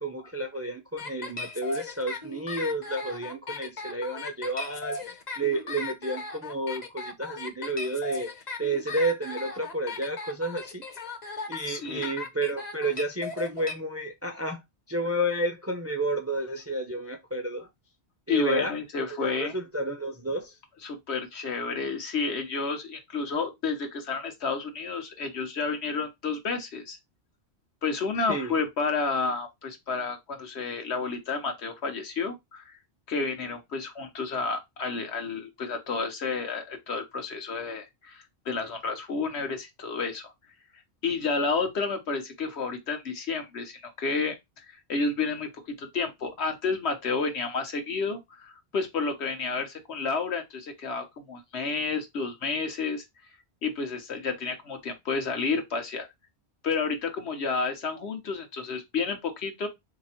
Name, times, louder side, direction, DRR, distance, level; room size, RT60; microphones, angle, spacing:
voice 1, 0.0-10.8 11.5-14.6 14.9-17.7 18.3-18.7 19.0-20.6 28.3-28.5, right 1 dB, 20° right, 0.4 m, -31 dB
sound 1, 1.0-13.7, left 3 dB, 45° left, 0.8 m, -37 dB
voice 2, 11.7-12.1 18.3-19.6 20.8-27.0 27.8-32.8 33.1-40.3 41.0-44.4 44.7-45.5 45.8-53.0 53.6-56.1 56.6-59.7, left 4 dB, 75° left, 1.2 m, -30 dB
3.3 x 3.0 x 4.2 m
omnidirectional pair, 1.1 m